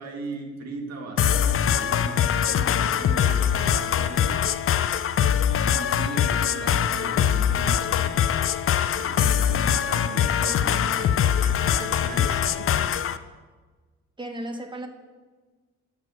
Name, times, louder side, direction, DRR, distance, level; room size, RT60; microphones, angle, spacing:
voice 1, 0.0-4.4 5.7-8.3 9.0-13.1, right 3 dB, 60° right, 3 dB, 1.9 m, -38 dB
sound 1, 1.2-13.2, left 9 dB, 45° left, 0.5 m, -23 dB
voice 2, 14.2-14.9, right 1 dB, 15° right, 5 dB, 1.3 m, -35 dB
8.2 x 7.5 x 6.3 m, 1.4 s
cardioid pair, 90°, 30 cm